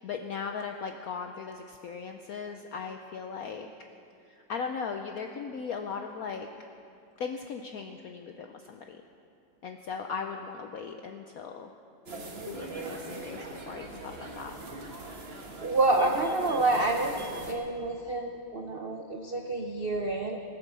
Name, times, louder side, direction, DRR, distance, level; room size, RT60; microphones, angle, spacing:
voice 1, 0.0-3.7 4.5-6.5 7.2-9.0 9.6-11.7 12.4-14.5, left 5 dB, 75° left, 5 dB, 0.8 m, -38 dB
sound 1, 12.1-17.5, right 2 dB, 35° right, 1.4 m, -41 dB
voice 2, 15.6-17.1 17.5-20.4, right 2 dB, 85° right, 3 dB, 0.5 m, -28 dB
18.5 x 8.2 x 6.9 m, 2.5 s
omnidirectional pair, 2.2 m